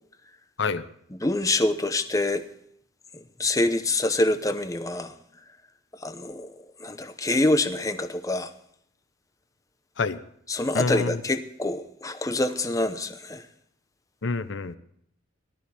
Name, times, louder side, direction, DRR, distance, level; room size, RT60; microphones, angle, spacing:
voice 1, 1.1-2.5 3.4-5.1 6.0-8.5 10.5-13.4, left 2 dB, 15° left, 0.8 m, -26 dB
voice 2, 10.7-11.2 14.2-14.8, left 4 dB, 65° left, 0.7 m, -27 dB
18.5 x 13.0 x 3.4 m
head